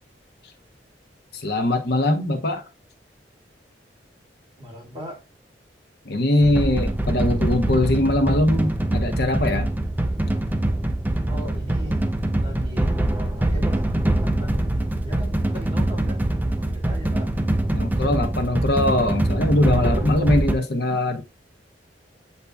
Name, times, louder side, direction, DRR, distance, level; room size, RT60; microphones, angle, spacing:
voice 1, 1.3-2.6 6.1-9.7 17.7-21.2, left 1 dB, 65° left, 0.9 m, -21 dB
voice 2, 4.6-5.2 11.3-12.1 12.4-14.7 15.0-17.3, equal, 35° right, 1.8 m, -38 dB
sound 1, 6.4-20.5, right 1 dB, 10° right, 0.4 m, -23 dB
8.1 x 2.9 x 2.3 m
head